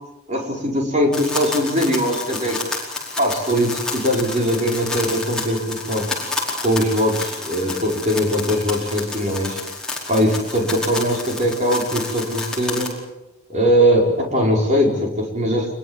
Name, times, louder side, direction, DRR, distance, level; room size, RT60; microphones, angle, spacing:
voice 1, 0.3-2.6 3.2-6.1 6.6-9.6 10.1-12.9 13.5-15.7, equal, 35° right, 0 dB, 5.4 m, -20 dB
sound 1, 1.1-12.9, left 3 dB, 5° left, 4.7 m, -30 dB
25.5 x 22.0 x 7.5 m, 1.0 s
head